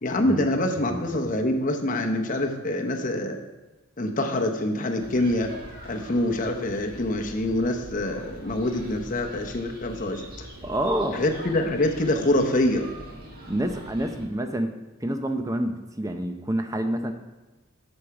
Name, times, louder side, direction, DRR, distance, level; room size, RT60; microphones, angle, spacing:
voice 1, 0.0-3.4 4.0-5.5 5.8-10.5 11.1-12.9, left 1 dB, 40° left, 3 dB, 0.8 m, -25 dB
voice 2, 0.9-1.3 10.6-11.2 13.5-14.7 15.0-17.1, right 1 dB, 15° right, 7 dB, 0.6 m, -28 dB
sound 1, 5.0-14.3, right 1 dB, 45° right, 1.7 m, -43 dB
8.3 x 7.1 x 4.8 m, 1.1 s
head